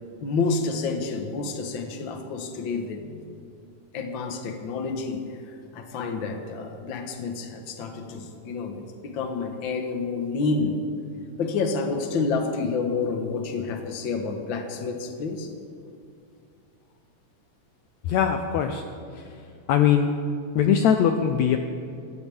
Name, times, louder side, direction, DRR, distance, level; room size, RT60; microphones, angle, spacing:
voice 1, 0.2-3.2 3.9-5.2 5.7-10.8 11.4-15.5, left 4 dB, 50° left, 4 dB, 1.6 m, -29 dB
voice 2, 18.0-18.8 19.1-19.4 19.7-20.1 20.5-21.6, left 8 dB, 75° left, 6 dB, 1.8 m, -21 dB
22.5 x 17.0 x 3.6 m, 2.4 s
omnidirectional pair, 3.6 m